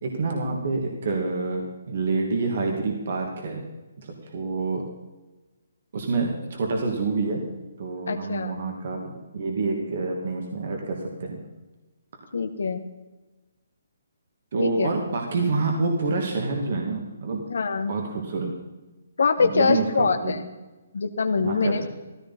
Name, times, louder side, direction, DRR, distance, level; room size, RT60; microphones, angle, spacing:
voice 1, 0.0-3.6 4.0-4.8 5.9-7.4 7.8-11.4 14.5-17.5 17.9-18.5 19.4-20.4 21.4-21.9, right 3 dB, 50° right, 1 dB, 2.5 m, -27 dB
voice 2, 8.1-8.6 12.3-12.8 14.6-14.9 17.5-17.9 19.2-20.4 20.9-21.8, left 5 dB, 75° left, 7 dB, 1.3 m, -24 dB
15.0 x 14.5 x 4.3 m, 1.1 s
hypercardioid pair, 170°, 0 cm